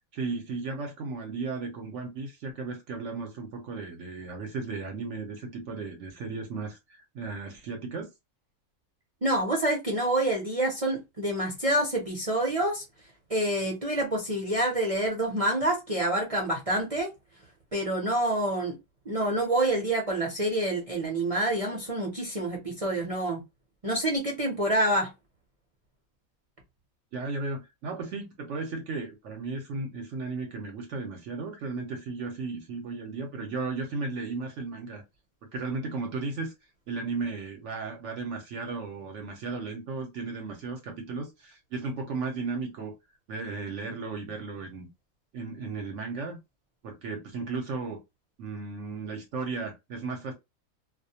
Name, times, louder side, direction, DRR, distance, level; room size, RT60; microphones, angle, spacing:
voice 1, 0.1-8.1 27.1-35.0 35.5-36.5 36.9-42.9 43.3-44.9 45.3-46.4 46.8-48.0 48.4-50.3, right 4 dB, 65° right, 0.8 m, -35 dB
voice 2, 9.2-12.8 13.3-17.1 17.7-18.7 19.1-23.4 23.8-25.1, right 1 dB, 45° right, 0.4 m, -27 dB
2.3 x 2.1 x 2.6 m
omnidirectional pair, 1.5 m